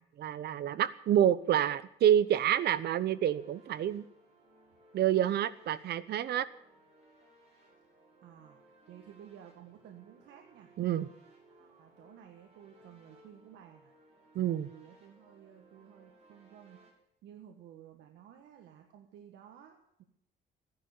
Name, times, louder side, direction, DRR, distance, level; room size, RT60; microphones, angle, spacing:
voice 1, 0.2-4.0 4.9-6.5 10.8-11.1 14.3-14.7, right 10 dB, 65° right, 17 dB, 0.9 m, -28 dB
sound 1, 2.1-16.9, right 2 dB, 35° right, 7.0 m, -62 dB
voice 2, 8.2-10.7 11.5-13.9 14.4-16.8 17.2-20.0, right 9 dB, 85° right, 4 dB, 1.7 m, -54 dB
15.5 x 11.0 x 6.7 m, 0.74 s
cardioid pair, 115°, 18 cm